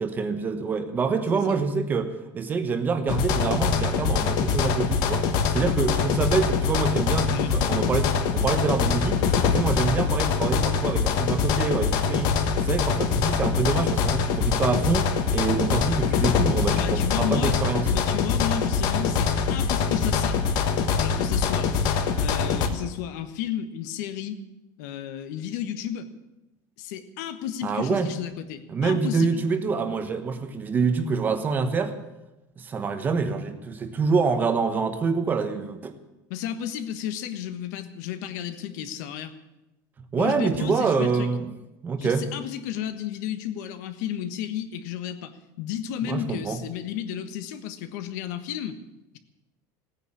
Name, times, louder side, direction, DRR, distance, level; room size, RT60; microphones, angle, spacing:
voice 1, 0.0-9.2 9.5-17.9 27.6-28.1 28.7-31.9 32.6-35.9 40.1-41.5 41.8-42.3 46.0-46.6, right 4 dB, 20° right, 9 dB, 1.0 m, -26 dB
voice 2, 1.3-1.7 7.3-7.9 16.7-17.6 17.8-20.4 21.0-21.7 22.1-24.4 24.8-26.1 26.8-29.4 36.3-39.3 40.2-41.3 42.0-48.8, left 10 dB, 85° left, 10 dB, 1.4 m, -33 dB
sound 1, 3.1-22.7, left 6 dB, 50° left, 1.3 m, -24 dB
16.5 x 9.7 x 8.6 m, 0.98 s
cardioid pair, 175°, 9 cm